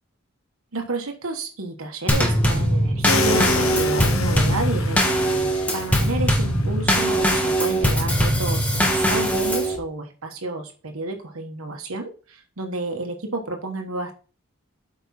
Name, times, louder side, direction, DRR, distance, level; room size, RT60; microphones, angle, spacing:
voice 1, 0.7-5.1 5.5-14.1, right 2 dB, 90° right, 3 dB, 1.4 m, -31 dB
Drum kit / Snare drum / Bass drum, 2.1-9.8, equal, 5° left, 1.5 m, -21 dB
sound 1, 3.0-9.3, left 4 dB, 80° left, 0.9 m, -30 dB
8.5 x 5.4 x 4.3 m, 0.37 s
head